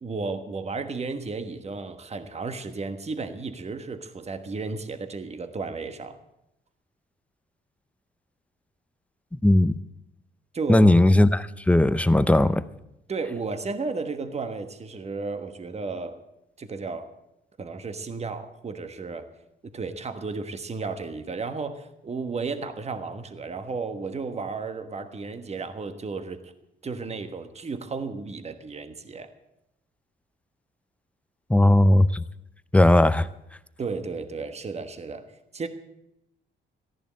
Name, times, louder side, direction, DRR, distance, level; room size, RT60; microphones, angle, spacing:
voice 1, 0.0-6.2 10.5-10.9 13.1-16.2 16.6-17.1 17.6-19.3 19.6-26.5 26.8-29.3 33.8-35.3 35.5-35.7, right 4 dB, 35° right, 9 dB, 1.4 m, -33 dB
voice 2, 9.3-9.8 10.7-12.6 31.5-32.2 32.7-33.3, left 1 dB, 5° left, 15 dB, 0.6 m, -18 dB
14.5 x 10.5 x 7.5 m, 0.85 s
cardioid pair, 90°, 20 cm